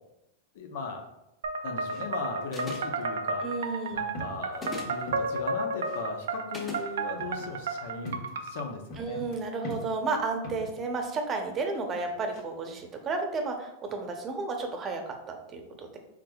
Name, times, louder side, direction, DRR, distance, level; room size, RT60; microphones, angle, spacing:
voice 1, 0.5-1.1 1.6-3.5 3.9-9.2, left 4 dB, 75° left, 3 dB, 0.8 m, -37 dB
sound 1, 1.4-8.6, right 3 dB, 90° right, 0.4 m, -33 dB
sound 2, 1.9-2.0 2.4-2.9 3.7-3.8 4.1-5.5 5.8-6.0 6.6-10.8 11.6-12.5 12.8-12.9, left 1 dB, 55° left, 1.3 m, -44 dB
sound 3, 2.5-3.0 4.5-5.0 6.5-6.9, left 2 dB, 20° left, 1.2 m, -38 dB
voice 2, 3.4-4.0 9.0-16.0, right 3 dB, 30° right, 4 dB, 0.7 m, -32 dB
4.8 x 3.6 x 2.3 m, 0.89 s
hypercardioid pair, 120°, 0 cm